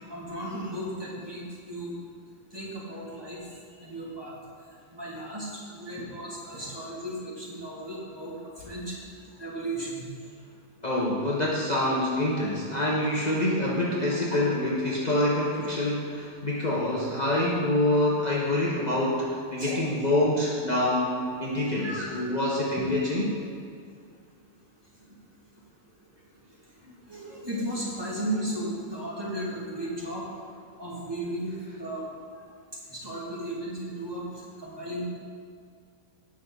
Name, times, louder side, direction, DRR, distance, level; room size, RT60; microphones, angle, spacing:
voice 1, 0.1-2.0 2.5-3.4 3.7-4.4 4.9-9.0 9.4-10.1 14.3-14.4 19.6-19.8 21.8-22.0 26.8-30.3 30.8-32.0 32.9-34.3 34.6-35.1, right 1 dB, 15° right, -7 dB, 2.5 m, -35 dB
voice 2, 10.8-23.4, left 1 dB, 30° left, -6 dB, 1.3 m, -26 dB
17.5 x 6.2 x 4.0 m, 2.3 s
omnidirectional pair, 1.4 m